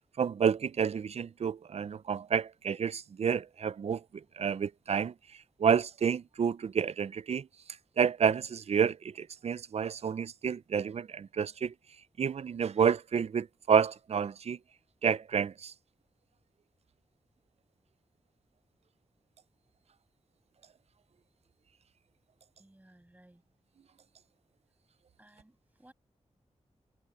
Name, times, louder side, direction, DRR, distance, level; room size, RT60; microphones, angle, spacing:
voice 1, 0.2-5.1 5.6-7.5 8.0-11.7 12.2-14.6 15.0-15.7, right 7 dB, 60° right, 0.4 m, -29 dB
voice 2, 22.6-23.4 25.2-25.9, right 1 dB, 15° right, 7.8 m, -59 dB
wide cardioid pair, 100°, 12 cm